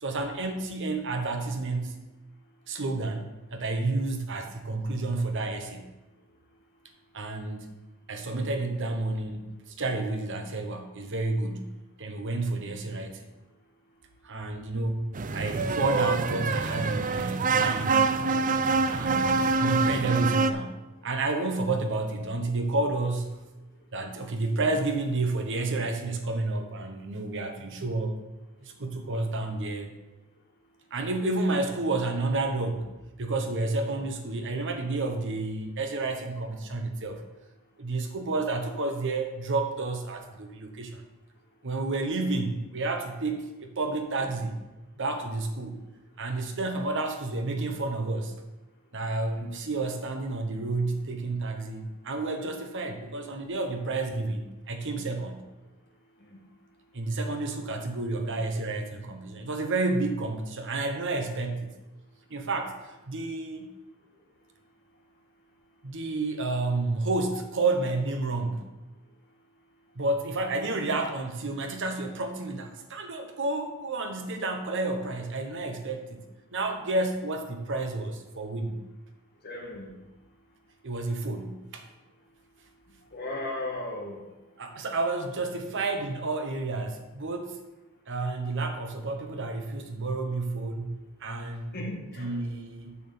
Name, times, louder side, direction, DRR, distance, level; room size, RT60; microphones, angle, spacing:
voice 1, 0.0-2.0 2.7-5.9 7.1-7.7 8.1-9.5 9.8-13.3 14.2-18.0 18.9-20.8 21.0-23.4 23.9-28.2 28.6-29.9 30.9-32.9 33.2-37.2 37.8-41.0 41.6-44.6 45.0-45.8 46.2-48.4 48.9-55.5 56.9-61.7 62.3-62.8 63.1-63.7 65.8-68.7 69.9-76.2 76.5-78.8 80.8-81.8 84.6-87.6 88.1-91.8 92.2-93.0, right 2 dB, 60° right, 5 dB, 1.1 m, -30 dB
sound 1, 15.1-20.5, right 4 dB, 35° right, 0.5 m, -25 dB
voice 2, 79.4-79.9 83.1-84.2 91.7-92.4, left 1 dB, 45° left, -1 dB, 2.1 m, -36 dB
6.8 x 6.3 x 7.0 m, 1.1 s
head